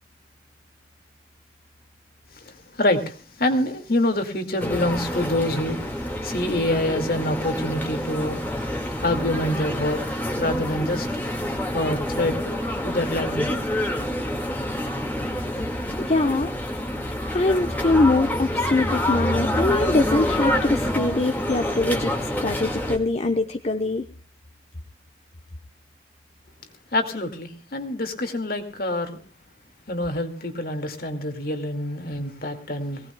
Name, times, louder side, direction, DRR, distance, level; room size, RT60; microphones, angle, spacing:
voice 1, 2.3-8.4 8.9-11.2 11.7-13.6 26.9-29.2 29.9-33.1, left 1 dB, 55° left, 5 dB, 2.2 m, -26 dB
sound 1, 4.6-23.0, left 1 dB, 10° left, 2.0 m, -27 dB
voice 2, 16.0-16.6 17.3-22.1 22.4-24.1, left 2 dB, 40° left, 4 dB, 0.9 m, -23 dB
23.5 x 18.0 x 2.3 m, 0.39 s
head